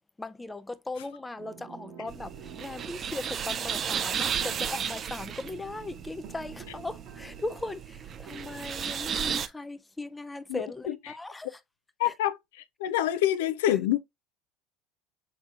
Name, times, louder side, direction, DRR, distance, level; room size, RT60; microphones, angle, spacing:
voice 1, 0.2-2.3 2.6-11.6 12.0-12.1, left 2 dB, 10° left, 0.5 m, -38 dB
sound 1, 1.4-8.7, right 7 dB, 60° right, 1.3 m, -50 dB
sound 2, 2.1-9.5, right 7 dB, 40° right, 0.5 m, -34 dB
voice 2, 10.5-11.2 12.0-14.0, left 12 dB, 75° left, 0.4 m, -27 dB
5.9 x 3.2 x 2.5 m
hypercardioid pair, 80°, 0 cm